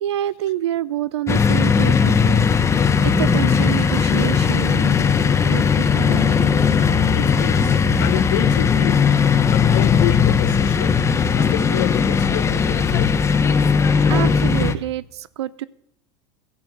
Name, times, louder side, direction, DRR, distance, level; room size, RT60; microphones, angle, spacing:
voice 1, 0.0-2.4 2.7-5.1 5.4-5.6 6.0-6.5 14.1-15.6, right 12 dB, 90° right, 0.4 m, -27 dB
sound 1, 1.3-14.7, left 6 dB, 20° left, 0.8 m, -18 dB
voice 2, 7.1-9.1 9.5-11.0 11.3-13.2, left 15 dB, 65° left, 0.6 m, -27 dB
12.0 x 7.4 x 7.8 m
hypercardioid pair, 105°, 14 cm